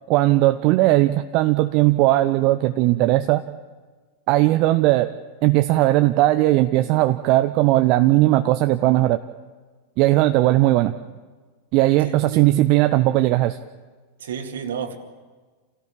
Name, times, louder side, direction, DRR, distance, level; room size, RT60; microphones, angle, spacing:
voice 1, 0.1-3.4 4.3-5.1 5.4-9.2 10.0-10.9 11.7-13.6, right 17 dB, 40° right, 9 dB, 0.7 m, -18 dB
voice 2, 12.0-12.4 14.2-15.0, right 7 dB, 60° right, 6 dB, 2.2 m, -31 dB
28.5 x 17.5 x 8.5 m, 1.4 s
figure-of-eight pair, 90°, 0 cm